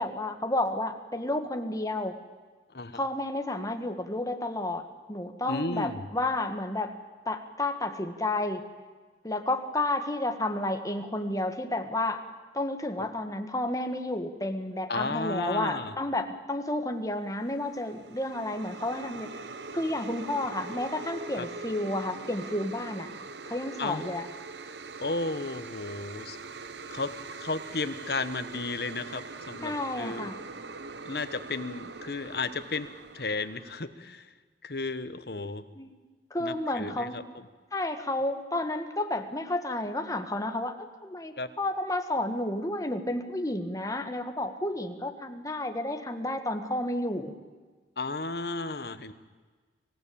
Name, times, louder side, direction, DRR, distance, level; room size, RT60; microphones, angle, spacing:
voice 1, 0.0-2.1 2.9-6.9 7.2-8.6 9.2-12.2 12.5-19.3 19.7-23.1 23.4-24.2 29.6-30.3 35.8-35.9 36.3-37.2 37.7-47.3, left 1 dB, 20° left, 6 dB, 1.7 m, -31 dB
voice 2, 5.5-6.1 14.9-16.0 21.4-21.5 23.8-24.0 25.0-26.4 26.9-27.1 27.4-30.3 31.0-32.9 33.1-34.3 34.6-35.6 36.4-37.4 41.4-41.5 48.0-49.1, left 3 dB, 60° left, 11 dB, 1.3 m, -33 dB
sound 1, 17.5-33.9, right 3 dB, 80° right, 1.0 m, -42 dB
25.5 x 16.5 x 8.8 m, 1.4 s
head